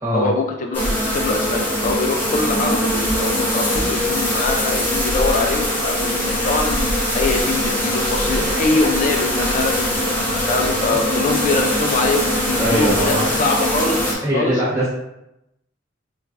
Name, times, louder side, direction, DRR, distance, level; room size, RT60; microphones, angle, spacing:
voice 1, 0.1-14.6, left 3 dB, 40° left, 2 dB, 0.3 m, -23 dB
sound 1, 0.7-14.1, equal, 10° left, 0.7 m, -21 dB
voice 2, 12.5-13.3 14.2-14.9, equal, 15° right, -8 dB, 1.1 m, -21 dB
4.5 x 2.3 x 2.5 m, 0.88 s
head